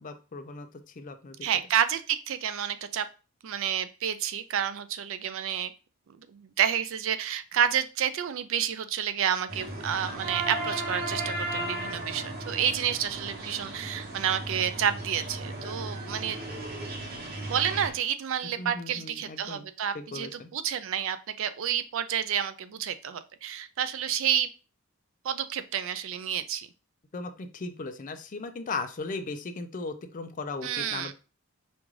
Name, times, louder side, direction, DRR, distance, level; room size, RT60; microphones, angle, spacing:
voice 1, 0.0-1.4 18.6-19.6 19.9-20.5 27.1-31.1, left 3 dB, 40° left, 8 dB, 0.4 m, -37 dB
voice 2, 1.4-3.1 3.4-5.7 6.1-16.4 17.5-24.5 25.2-26.7 30.6-31.1, right 9 dB, 65° right, 12 dB, 0.4 m, -29 dB
sound 1, 9.5-17.9, right 2 dB, 45° right, 0.9 m, -35 dB
5.2 x 2.4 x 3.1 m, 0.33 s
head